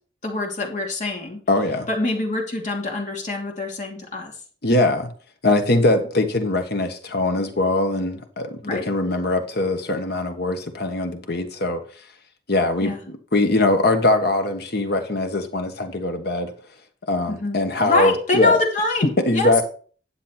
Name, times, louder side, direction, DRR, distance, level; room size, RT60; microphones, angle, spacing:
voice 1, 0.2-1.4 1.9-4.3 8.6-8.9 12.8-13.0 17.3-19.5, left 2 dB, 45° left, 0 dB, 2.6 m, -25 dB
voice 2, 1.5-1.9 4.6-5.1 5.4-11.8 12.5-16.5 17.1-18.6 19.3-19.6, left 2 dB, 60° left, 6 dB, 1.5 m, -22 dB
10.0 x 7.3 x 4.4 m, 0.42 s
head